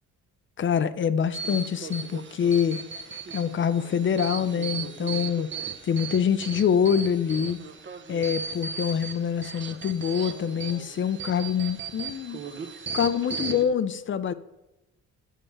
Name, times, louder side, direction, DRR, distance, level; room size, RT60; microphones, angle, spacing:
voice 1, 0.6-2.8 3.3-5.5 5.8-7.6 8.1-12.7 12.9-14.3, left 8 dB, 40° left, 0.5 m, -25 dB
sound 1, 1.3-13.7, right 5 dB, 40° right, 0.9 m, -37 dB
6.9 x 5.6 x 7.3 m
cardioid pair, 90°, 30 cm